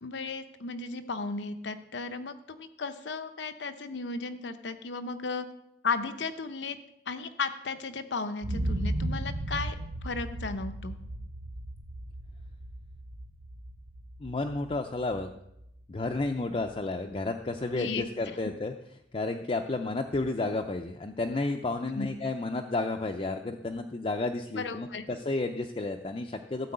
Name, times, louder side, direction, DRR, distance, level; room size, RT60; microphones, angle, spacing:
voice 1, 0.0-5.5 5.8-6.8 7.1-9.8 10.0-11.0 17.7-18.1 21.9-22.1 24.5-25.0, left 4 dB, 80° left, 9 dB, 0.8 m, -35 dB
sound 1, 8.4-16.3 16.7-16.8, right 1 dB, 70° right, 0.9 m, -36 dB
voice 2, 14.2-15.3 15.9-18.7 19.1-26.7, left 2 dB, 30° left, 4 dB, 0.5 m, -32 dB
12.5 x 4.6 x 7.9 m, 0.81 s
head